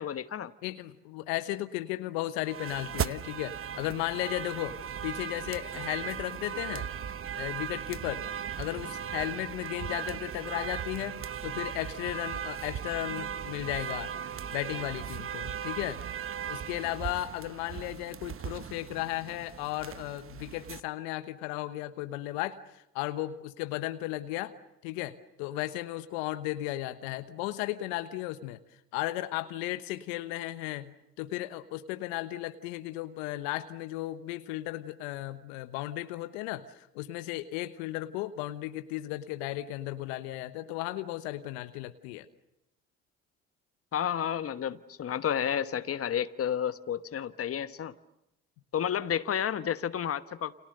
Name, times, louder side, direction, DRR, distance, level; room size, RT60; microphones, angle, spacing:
voice 1, 0.0-0.5 43.9-47.9 48.7-50.5, left 9 dB, 45° left, 12 dB, 1.2 m, -31 dB
voice 2, 0.6-4.8 5.0-6.9 7.3-8.2 8.6-14.1 14.5-16.0 16.5-24.5 24.8-28.6 28.9-42.3, left 16 dB, 80° left, 11 dB, 1.1 m, -35 dB
sound 1, 2.4-20.8, right 8 dB, 40° right, 1.0 m, -37 dB
29.5 x 27.5 x 6.7 m, 0.85 s
hypercardioid pair, 55°, 33 cm